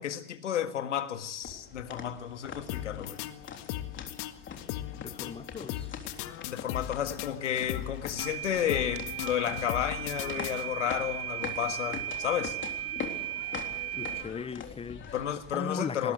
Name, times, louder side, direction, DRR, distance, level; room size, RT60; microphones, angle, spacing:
voice 1, 0.0-3.2 6.5-12.6 15.1-16.1, left 10 dB, 90° left, 1.8 m, -32 dB
sound 1, 1.4-15.5, left 6 dB, 35° left, 3.7 m, -43 dB
sound 2, 2.7-11.0, left 14 dB, 60° left, 1.8 m, -39 dB
voice 2, 4.9-5.9 13.9-15.2 15.5-16.1, left 5 dB, 15° left, 0.9 m, -38 dB
sound 3, 8.2-14.2, right 12 dB, 40° right, 1.6 m, -37 dB
20.0 x 19.5 x 8.1 m
hypercardioid pair, 90°, 35 cm